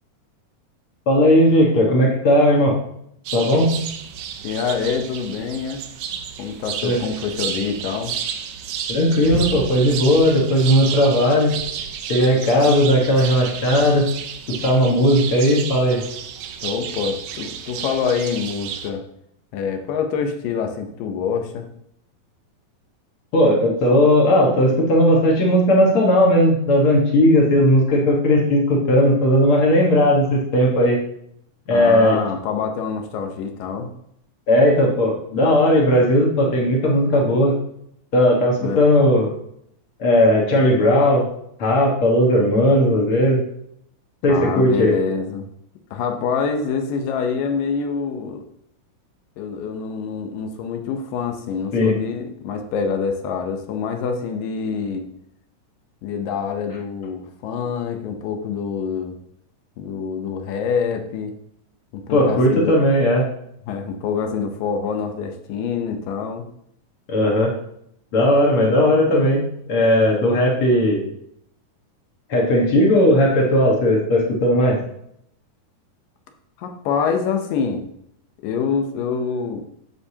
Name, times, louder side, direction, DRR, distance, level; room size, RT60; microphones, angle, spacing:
voice 1, 1.1-2.8 3.3-3.8 6.8-7.0 8.9-11.5 12.1-14.1 14.5-16.0 23.3-31.0 31.7-32.2 34.5-37.5 38.1-39.3 40.0-41.3 41.6-43.4 44.2-44.9 51.7-51.9 62.1-63.3 67.1-67.6 68.1-71.1 72.3-74.8, equal, 50° left, -1 dB, 1.7 m, -16 dB
sound 1, 3.3-18.9, right 8 dB, 85° right, 1.6 m, -31 dB
voice 2, 4.4-5.8 6.4-8.1 16.6-19.0 19.5-21.7 31.7-33.9 38.6-38.8 44.3-45.5 45.9-48.4 49.4-55.1 56.0-59.2 59.8-61.3 61.9-62.8 63.7-66.5 76.6-77.8 78.4-79.7, left 6 dB, 75° left, 5 dB, 2.4 m, -26 dB
9.6 x 6.9 x 2.8 m, 0.73 s
omnidirectional pair, 4.1 m